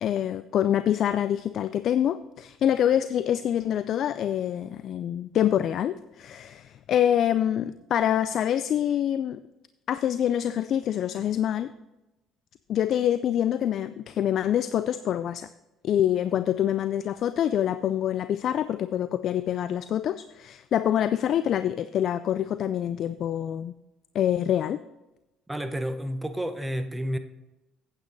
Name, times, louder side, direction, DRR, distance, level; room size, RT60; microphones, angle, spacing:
voice 1, 0.0-9.4 9.9-11.7 12.7-15.5 15.8-23.7 24.1-24.8, left 10 dB, 60° left, 13 dB, 0.3 m, -26 dB
voice 2, 25.5-27.2, equal, 10° right, 9 dB, 1.0 m, -30 dB
8.7 x 8.6 x 4.0 m, 1.0 s
supercardioid pair, 70°, 0 cm